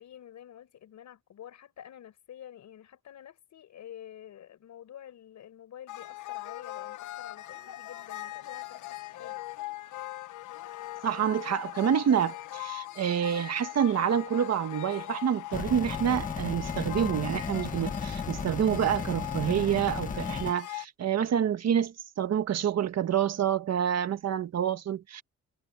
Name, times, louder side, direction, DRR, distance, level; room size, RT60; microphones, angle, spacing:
voice 1, 0.0-9.4, left 10 dB, 70° left, 5.2 m, -49 dB
sound 1, 5.9-20.9, left 17 dB, 90° left, 1.1 m, -40 dB
voice 2, 11.0-25.2, right 9 dB, 60° right, 1.6 m, -28 dB
sound 2, 15.5-20.5, left 5 dB, 25° left, 1.5 m, -35 dB
wide cardioid pair, 150°, 29 cm